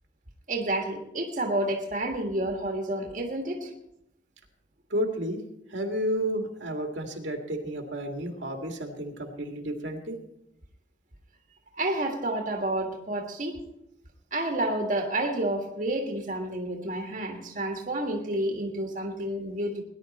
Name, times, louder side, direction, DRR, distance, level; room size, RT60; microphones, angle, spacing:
voice 1, 0.5-3.7 11.7-13.6 14.3-19.8, right 1 dB, 40° right, 2 dB, 1.7 m, -30 dB
voice 2, 4.9-5.4 5.7-10.2, equal, 80° right, 3 dB, 2.1 m, -31 dB
19.0 x 11.0 x 4.2 m, 0.80 s
head